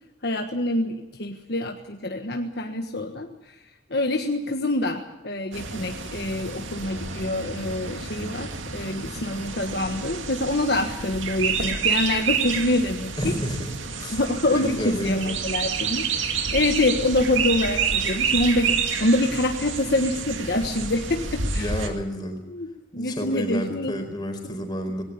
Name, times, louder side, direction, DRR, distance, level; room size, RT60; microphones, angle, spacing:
voice 1, 0.2-3.5 3.9-13.3 14.1-21.7 22.5-24.0, left 1 dB, 55° left, 4 dB, 1.4 m, -26 dB
sound 1, 5.5-21.9, right 5 dB, 80° right, 2.3 m, -29 dB
voice 2, 13.2-13.6 14.0-14.2 14.5-15.4 21.6-22.4 22.9-25.0, equal, 20° left, 4 dB, 4.5 m, -30 dB
20.0 x 18.0 x 8.6 m, 0.97 s
head